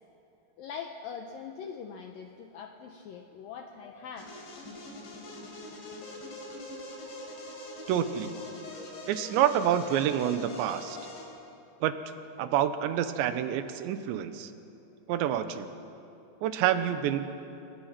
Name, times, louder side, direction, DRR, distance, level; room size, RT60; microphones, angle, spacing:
voice 1, 0.6-4.3, left 6 dB, 90° left, 4 dB, 1.9 m, -42 dB
sound 1, 4.2-11.2, left 2 dB, 70° left, 6.3 m, -43 dB
voice 2, 7.9-8.3 9.1-11.0 11.8-11.9 12.4-14.5 15.1-15.7 16.4-17.3, right 10 dB, 75° right, 10 dB, 3.1 m, -27 dB
27.5 x 23.0 x 5.9 m, 2.8 s
omnidirectional pair, 5.5 m